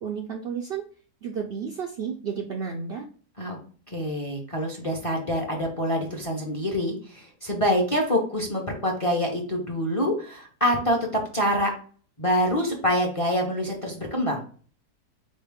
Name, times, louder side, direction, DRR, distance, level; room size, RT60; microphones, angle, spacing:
voice 1, 0.0-0.8 1.2-3.0, right 6 dB, 90° right, 1 dB, 0.5 m, -32 dB
voice 2, 3.9-11.7 12.2-14.4, equal, 35° left, 0 dB, 0.6 m, -26 dB
4.2 x 3.2 x 3.5 m, 0.42 s
omnidirectional pair, 1.7 m